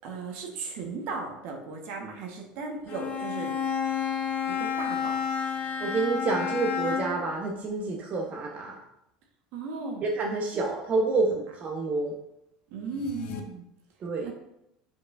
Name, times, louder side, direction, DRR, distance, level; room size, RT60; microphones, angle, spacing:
voice 1, 0.0-3.5 4.5-5.2 9.5-10.1 10.5-10.6 11.3-11.4 12.7-13.6 14.2-14.3, right 4 dB, 65° right, 1 dB, 1.5 m, -36 dB
Bowed string instrument, 2.9-7.3, left 7 dB, 45° left, 1.2 m, -30 dB
voice 2, 5.8-8.8 10.0-12.1 14.0-14.3, right 3 dB, 40° right, 0 dB, 1.2 m, -28 dB
sound 1, 12.8-13.4, left 6 dB, 60° left, 0.9 m, -40 dB
7.8 x 5.2 x 2.7 m, 0.82 s
hypercardioid pair, 75°, 4 cm